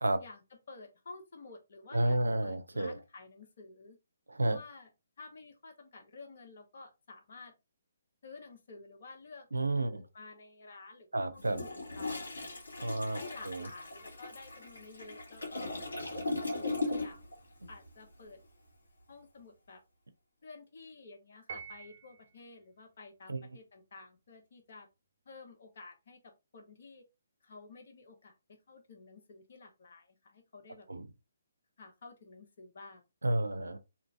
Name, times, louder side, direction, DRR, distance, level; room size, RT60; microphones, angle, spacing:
voice 1, 0.2-4.0 4.4-4.9 5.2-7.5 8.2-12.3 13.1-15.7 16.5-17.2 17.7-18.4 19.1-19.8 20.4-24.9 25.2-27.0 27.4-30.9 31.8-33.0, left 3 dB, 55° left, 1.1 m, -52 dB
voice 2, 1.9-3.0 4.3-4.6 9.5-10.0 11.1-11.6 12.8-13.2 13.4-13.7 23.3-23.5 30.9-31.0 33.2-33.8, right 1 dB, 90° right, 0.6 m, -31 dB
Toilet flush, 11.4-17.3 17.6-17.9, left 2 dB, 80° left, 1.5 m, -38 dB
Piano, 21.5-22.4, right 6 dB, 45° right, 1.2 m, -46 dB
2.8 x 2.6 x 3.5 m
figure-of-eight pair, 140°, 0 cm